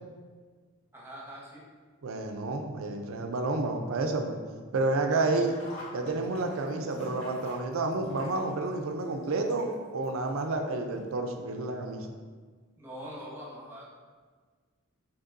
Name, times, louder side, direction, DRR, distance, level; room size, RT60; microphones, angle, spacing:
voice 1, 0.9-1.6 5.1-5.3 12.8-14.0, equal, 10° right, -5 dB, 0.9 m, -43 dB
voice 2, 2.0-4.4 4.7-5.5 5.9-12.1, right 2 dB, 65° right, 4 dB, 0.4 m, -30 dB
Sink (filling or washing), 5.1-10.1 10.4-10.5 11.5-11.6 11.9-12.0, left 1 dB, 65° left, 1.0 m, -46 dB
5.2 x 3.4 x 2.5 m, 1.5 s
head